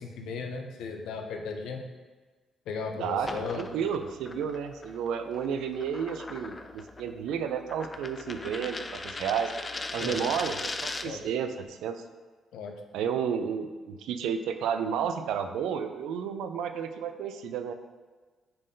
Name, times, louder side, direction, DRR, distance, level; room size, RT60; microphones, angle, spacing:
voice 1, 0.0-1.8 2.7-3.6 10.0-10.2 11.0-11.2 12.5-12.8, left 5 dB, 85° left, 3 dB, 0.5 m, -36 dB
voice 2, 3.0-9.5 9.9-12.0 12.9-17.7, right 7 dB, 85° right, 8 dB, 0.3 m, -32 dB
sound 1, 3.2-11.3, left 3 dB, 30° left, 0.3 m, -39 dB
5.3 x 3.6 x 2.7 m, 1.4 s
cardioid pair, 90°, 0 cm